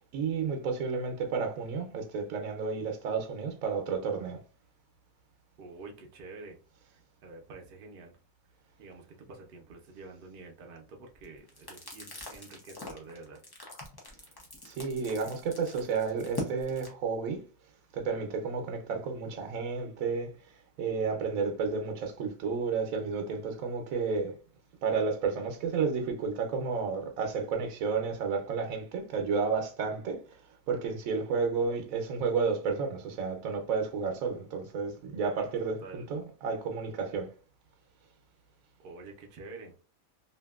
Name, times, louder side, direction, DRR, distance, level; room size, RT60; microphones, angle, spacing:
voice 1, 0.1-4.4 14.6-17.4 17.9-20.3 20.8-24.3 24.8-30.2 30.7-37.3, right 5 dB, 75° right, 1.0 m, -31 dB
voice 2, 5.6-6.6 6.8-8.2 8.8-13.4 20.9-21.4 35.6-36.1 38.8-39.7, right 3 dB, 55° right, 0.6 m, -48 dB
sound 1, 11.1-16.9, left 3 dB, 35° left, 0.3 m, -43 dB
2.8 x 2.5 x 2.3 m
omnidirectional pair, 1.5 m